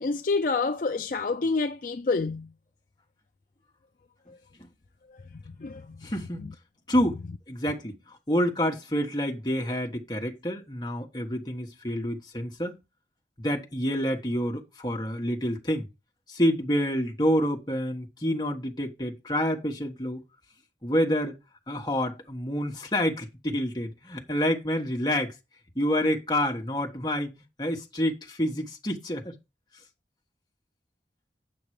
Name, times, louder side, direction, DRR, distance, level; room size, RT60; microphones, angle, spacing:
voice 1, 0.0-2.5 5.6-6.0, left 4 dB, 50° left, 0.4 m, -27 dB
voice 2, 6.0-6.4 6.9-7.2 7.5-12.8 13.4-15.9 16.3-20.2 20.8-21.4 21.7-25.3 25.7-27.3 27.6-29.4, equal, 25° left, 1.3 m, -28 dB
8.8 x 5.9 x 4.8 m
head